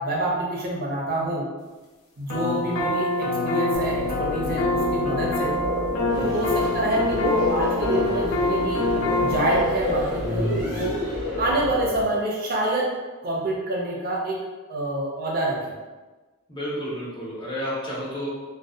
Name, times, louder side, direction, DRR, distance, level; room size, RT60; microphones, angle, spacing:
voice 1, 0.0-1.5 2.2-5.6 6.2-8.9 9.2-11.0 11.4-12.9 13.2-14.4 14.7-15.7, right 1 dB, 45° right, -3 dB, 0.5 m, -27 dB
sound 1, 2.3-9.7, left 2 dB, 70° left, 0.5 m, -25 dB
voice 2, 2.6-2.9 6.5-6.7 16.5-18.3, equal, 20° left, -8 dB, 0.7 m, -32 dB
sound 2, 3.7-12.0, left 1 dB, 55° left, 0.9 m, -29 dB
sound 3, 6.1-11.5, equal, 40° left, 1.2 m, -42 dB
2.6 x 2.1 x 2.3 m, 1.3 s
head